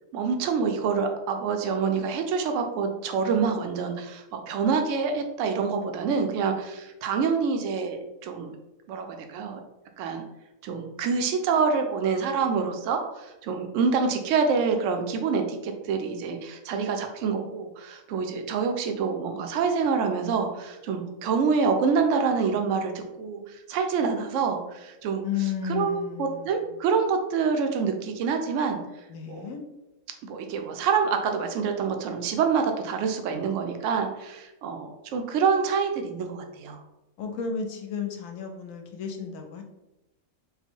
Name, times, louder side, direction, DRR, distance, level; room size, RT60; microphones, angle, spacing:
voice 1, 0.1-8.6 8.9-9.6 10.0-10.2 10.6-25.3 25.7-28.8 29.3-29.5 30.2-36.8, right 5 dB, 70° right, 5 dB, 0.9 m, -26 dB
voice 2, 25.2-26.7 29.1-29.6 37.2-39.6, left 7 dB, 70° left, 4 dB, 0.9 m, -33 dB
3.7 x 2.1 x 4.4 m, 0.97 s
omnidirectional pair, 1.5 m